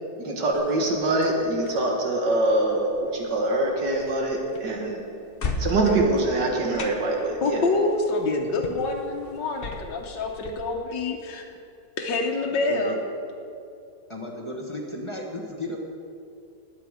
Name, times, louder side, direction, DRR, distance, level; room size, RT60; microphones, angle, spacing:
voice 1, 0.1-5.0 5.6-7.6, right 2 dB, 80° right, 0 dB, 2.3 m, -24 dB
sound 1, 0.5-10.5, left 3 dB, 40° left, 0.9 m, -38 dB
voice 2, 7.4-11.4 12.0-13.0, left 3 dB, 85° left, 0 dB, 1.6 m, -26 dB
voice 3, 12.5-13.0 14.1-15.8, left 1 dB, 20° left, 0 dB, 1.2 m, -34 dB
19.5 x 8.0 x 4.9 m, 2.6 s
omnidirectional pair, 1.9 m